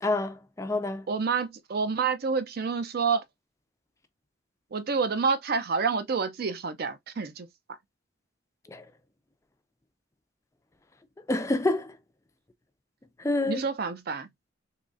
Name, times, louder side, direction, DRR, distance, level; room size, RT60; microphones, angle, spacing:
voice 1, 0.0-1.1 8.7-8.9 11.3-12.0 13.2-13.6, left 2 dB, 15° left, 0.4 m, -28 dB
voice 2, 1.1-3.2 4.7-7.5 13.5-14.3, right 5 dB, 50° right, 0.5 m, -28 dB
3.8 x 3.0 x 2.4 m
head